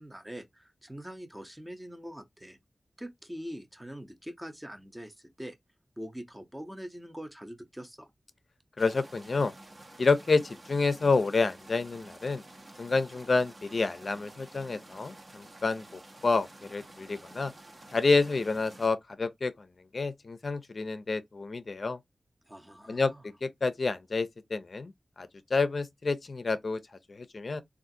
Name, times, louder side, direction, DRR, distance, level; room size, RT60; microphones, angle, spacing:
voice 1, 0.0-2.6 3.0-5.6 6.0-8.1 22.5-23.2, equal, 10° right, 0.6 m, -43 dB
voice 2, 8.8-9.5 10.0-12.4 12.8-17.5 17.9-19.7 19.9-22.0 22.9-23.1 23.4-24.9 25.2-26.8 27.1-27.6, left 4 dB, 60° left, 0.4 m, -29 dB
sound 1, 8.8-18.9, right 1 dB, 40° right, 0.7 m, -51 dB
3.5 x 2.4 x 2.6 m
wide cardioid pair, 75°, 0 cm